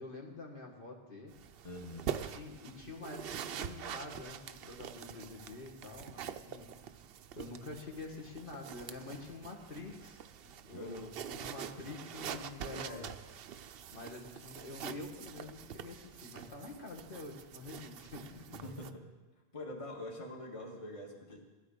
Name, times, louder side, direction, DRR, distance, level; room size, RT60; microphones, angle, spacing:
voice 1, 0.0-1.3 2.1-6.7 7.4-10.2 10.6-13.1 13.5-18.7, left 3 dB, 60° left, 0 dB, 1.9 m, -47 dB
sound 1, 1.3-18.9, right 8 dB, 70° right, 0.8 m, -45 dB
voice 2, 1.6-2.1 10.7-11.1 12.3-13.1 18.6-19.0 19.5-21.4, left 1 dB, 35° left, 0 dB, 1.6 m, -45 dB
15.0 x 12.5 x 5.0 m, 1.2 s
omnidirectional pair, 1.0 m